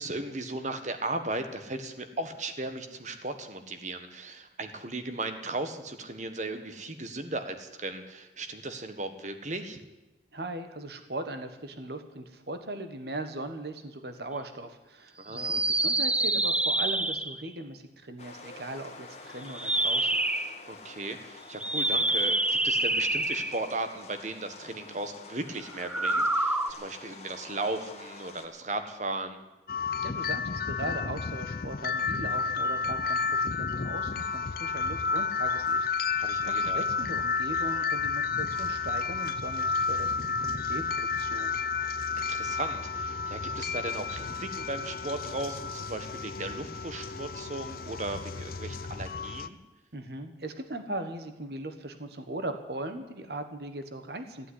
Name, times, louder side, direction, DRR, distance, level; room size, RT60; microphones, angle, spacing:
voice 1, 0.0-9.8 15.2-15.6 20.7-29.4 36.2-36.8 42.2-49.6, right 2 dB, 40° right, 8 dB, 1.4 m, -36 dB
voice 2, 10.3-20.2 30.0-41.6 49.9-54.5, right 2 dB, 60° right, 8 dB, 1.4 m, -39 dB
sound 1, 15.3-17.5 19.5-20.5 21.6-23.7 25.8-26.7, right 2 dB, 5° right, 0.6 m, -27 dB
sound 2, 18.2-28.5, left 3 dB, 35° left, 1.6 m, -48 dB
sound 3, 29.7-49.5, left 5 dB, 50° left, 0.6 m, -31 dB
15.5 x 9.2 x 9.9 m, 1.0 s
head